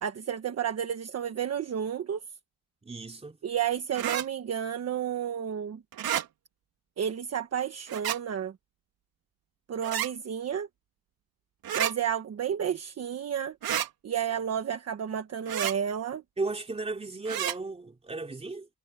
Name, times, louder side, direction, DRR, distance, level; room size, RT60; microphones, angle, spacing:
voice 1, 0.0-2.2 3.4-5.8 7.0-8.5 9.7-10.7 11.7-13.6 14.0-16.2, right 8 dB, 40° right, 1.3 m, -31 dB
voice 2, 2.8-3.4 16.4-18.7, right 3 dB, 15° right, 3.2 m, -35 dB
sound 1, 3.9-4.3 5.9-6.3 7.9-8.2 9.8-10.1 11.6-11.9 13.6-13.9 15.5-15.8 17.3-17.6, right 10 dB, 65° right, 3.4 m, -30 dB
cardioid pair, 170°, 39 cm